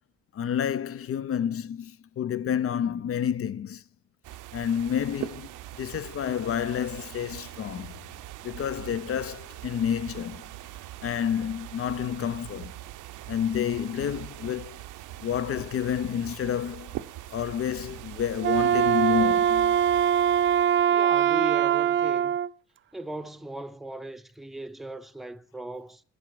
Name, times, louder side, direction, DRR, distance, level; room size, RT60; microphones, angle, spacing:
voice 1, 0.3-3.8 4.5-7.9 8.4-10.4 11.0-12.8 13.3-14.8 15.2-17.0 17.3-19.8, left 9 dB, 50° left, 0.6 m, -29 dB
sound 1, 4.2-21.0, right 14 dB, 80° right, 0.7 m, -42 dB
Wind instrument woodwind instrument, 18.4-22.5, right 9 dB, 40° right, 0.4 m, -22 dB
voice 2, 20.9-22.4 22.9-26.0, right 1 dB, ahead, 0.7 m, -38 dB
11.0 x 7.6 x 4.7 m
cardioid pair, 90°, 30 cm